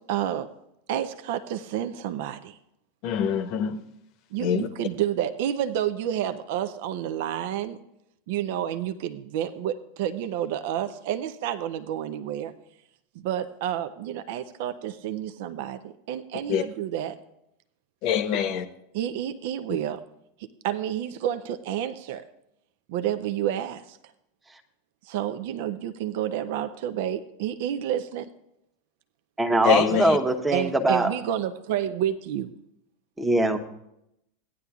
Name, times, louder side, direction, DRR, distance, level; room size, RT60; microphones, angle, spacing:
voice 1, 0.1-0.5 0.9-2.6 4.3-7.8 8.3-12.5 13.2-17.2 18.9-20.0 20.6-22.2 22.9-24.0 25.0-28.3 29.9-30.0 30.5-32.5, right 10 dB, 60° right, 11 dB, 0.5 m, -29 dB
voice 2, 3.0-3.8 4.4-4.7 16.5-16.6 18.0-18.7 29.6-30.2, left 9 dB, 50° left, 10 dB, 0.8 m, -24 dB
voice 3, 29.4-31.1 33.2-33.6, right 2 dB, 10° right, 4 dB, 1.0 m, -22 dB
16.5 x 10.0 x 2.4 m, 0.80 s
figure-of-eight pair, 85°, 0 cm